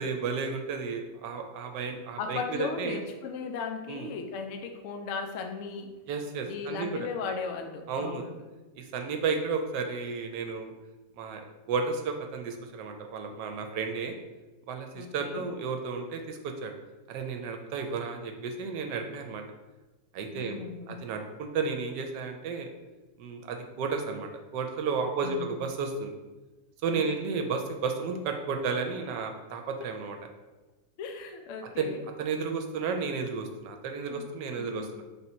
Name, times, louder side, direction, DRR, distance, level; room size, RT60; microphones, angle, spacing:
voice 1, 0.0-3.0 3.9-4.1 6.1-7.0 7.9-8.2 8.8-10.7 11.2-14.1 14.7-16.7 17.1-19.4 20.1-20.6 20.9-22.7 23.2-26.2 26.8-30.2 31.8-35.0, right 5 dB, 80° right, 5 dB, 1.2 m, -33 dB
voice 2, 2.2-5.9 6.4-8.4 14.9-15.5 20.3-21.0 25.2-25.5 26.9-27.1 31.0-32.1 34.1-34.2 34.6-35.0, left 5 dB, 75° left, 5 dB, 0.7 m, -37 dB
3.7 x 2.8 x 4.2 m, 1.1 s
omnidirectional pair, 1.9 m